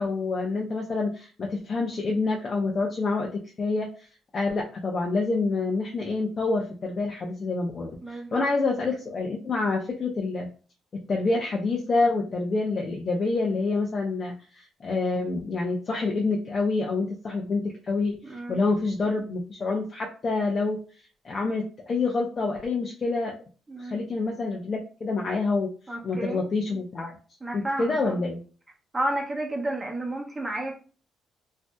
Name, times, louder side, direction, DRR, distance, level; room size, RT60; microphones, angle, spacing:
voice 1, 0.0-4.1 4.3-10.5 11.1-20.8 21.2-23.3 23.8-25.7 26.0-27.2 27.5-28.4, left 3 dB, 45° left, 0.6 m, -27 dB
voice 2, 8.0-8.5 18.2-18.6 23.7-24.1 25.9-26.4 27.4-28.2 28.9-30.7, right 1 dB, 20° right, 0.8 m, -31 dB
3.2 x 2.7 x 2.2 m
cardioid pair, 90°, 0 cm